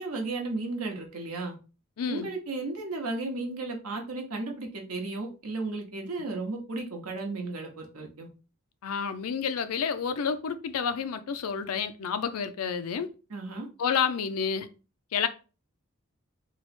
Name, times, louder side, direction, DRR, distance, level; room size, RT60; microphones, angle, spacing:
voice 1, 0.0-1.5 2.1-8.3 13.3-13.7, right 2 dB, 85° right, 0.9 m, -34 dB
voice 2, 2.0-2.3 8.8-13.1 13.8-14.7 15.1-15.3, left 6 dB, 80° left, 0.4 m, -29 dB
3.0 x 2.0 x 4.2 m
head